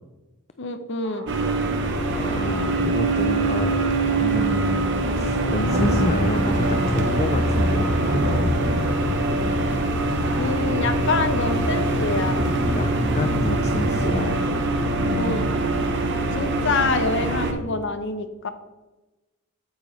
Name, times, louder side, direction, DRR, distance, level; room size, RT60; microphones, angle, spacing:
voice 1, 0.6-1.3 10.4-12.5 15.2-15.5 16.3-18.5, left 3 dB, 55° left, 10 dB, 0.7 m, -26 dB
sound 1, 1.0-6.1, right 1 dB, 85° right, 1.7 m, -42 dB
sound 2, 1.3-17.5, right 2 dB, 55° right, 1.0 m, -24 dB
voice 2, 2.1-3.8 4.1-8.8 10.4-10.6 12.7-14.4 15.0-15.5, left 3 dB, 30° left, 9 dB, 0.3 m, -29 dB
sound 3, 5.7-14.1, equal, 35° right, 2.4 m, -27 dB
8.6 x 8.0 x 3.2 m, 1.1 s
head